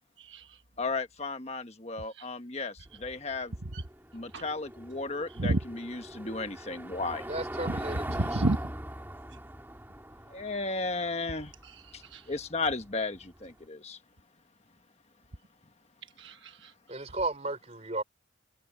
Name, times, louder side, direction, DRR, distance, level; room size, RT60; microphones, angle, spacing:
voice 1, 0.2-0.6 2.2-2.3 3.7-3.8 4.3-4.4 5.4-5.6 8.1-8.6 12.0-12.2 16.2-16.7, right 2 dB, 70° right, 1.3 m, -30 dB
voice 2, 0.8-3.5 4.1-7.3 10.3-11.5 11.9-12.0 12.3-14.0, left 3 dB, 35° left, 1.4 m, -34 dB
Car passing by / Engine, 2.9-13.5, right 1 dB, 10° right, 2.4 m, -41 dB
voice 3, 7.3-8.6 16.9-18.0, right 2 dB, 35° right, 3.7 m, -35 dB
head